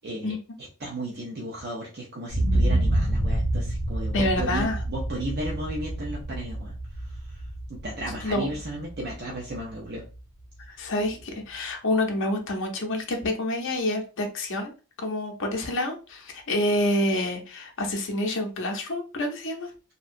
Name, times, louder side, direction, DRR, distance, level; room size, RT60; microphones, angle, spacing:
voice 1, 0.0-0.3 0.8-6.7 7.1-7.4 7.7-10.0 10.7-10.8, right 1 dB, 45° right, -3 dB, 0.6 m, -34 dB
sound 1, 2.3-10.2 10.6-10.7, right 1 dB, 70° right, 1.1 m, -28 dB
voice 2, 4.1-4.8 8.2-8.5 10.7-14.7 15.0-19.7, left 1 dB, 55° left, 2 dB, 0.6 m, -27 dB
2.6 x 2.2 x 2.5 m, 0.33 s
head